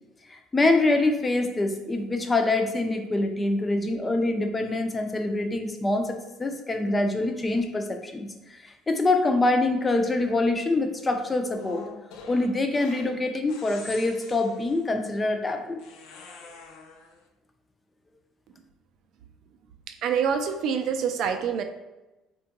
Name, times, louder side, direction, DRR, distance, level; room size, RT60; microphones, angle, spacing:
voice 1, 0.3-11.8 12.3-15.8, left 2 dB, 20° left, 5 dB, 0.3 m, -25 dB
sound 1, 11.5-13.2 13.5-14.9 15.8-17.2, left 4 dB, 75° left, 0.5 m, -46 dB
voice 2, 20.0-21.6, right 7 dB, 60° right, 7 dB, 0.3 m, -26 dB
3.6 x 2.2 x 2.9 m, 1.0 s
cardioid pair, 120°, 0 cm